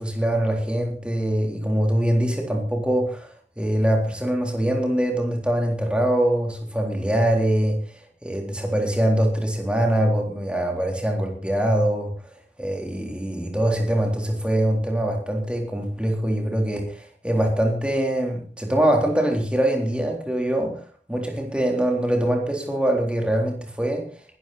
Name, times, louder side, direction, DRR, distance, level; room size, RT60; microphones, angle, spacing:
voice 1, 0.0-3.3 3.6-7.8 8.2-12.1 12.6-20.8 21.1-24.1, right 1 dB, 5° right, 2 dB, 3.6 m, -23 dB
19.5 x 12.5 x 4.2 m, 0.41 s
head